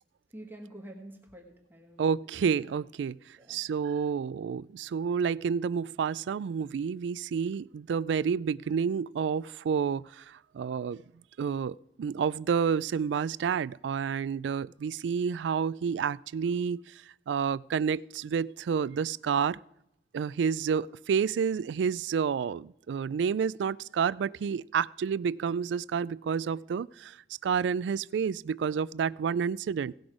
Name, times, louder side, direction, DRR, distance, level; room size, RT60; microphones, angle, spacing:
voice 1, 0.3-2.2 3.4-3.6, right 1 dB, 10° right, 0 dB, 1.3 m, -47 dB
voice 2, 2.0-11.0 11.4-19.6 20.1-27.2 27.4-29.9, right 6 dB, 90° right, 20 dB, 0.3 m, -29 dB
17.5 x 6.1 x 4.9 m, 0.80 s
head